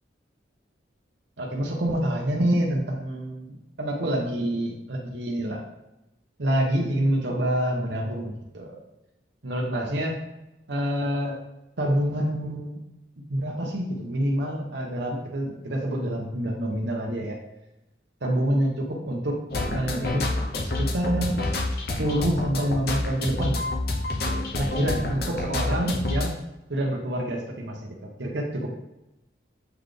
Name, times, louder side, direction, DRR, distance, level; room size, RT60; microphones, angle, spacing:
voice 1, 1.4-3.5 3.8-5.6 6.4-8.8 9.4-10.2 10.7-11.4 11.8-12.8 13.3-17.4 18.2-19.4 19.7-20.3 20.6-21.4 22.0-23.6 24.3-26.3 26.7-28.8, right 1 dB, 70° right, -1 dB, 0.9 m, -27 dB
sound 1, 19.5-26.3, left 2 dB, 55° left, 0.8 m, -28 dB
7.9 x 4.1 x 3.3 m, 0.92 s
head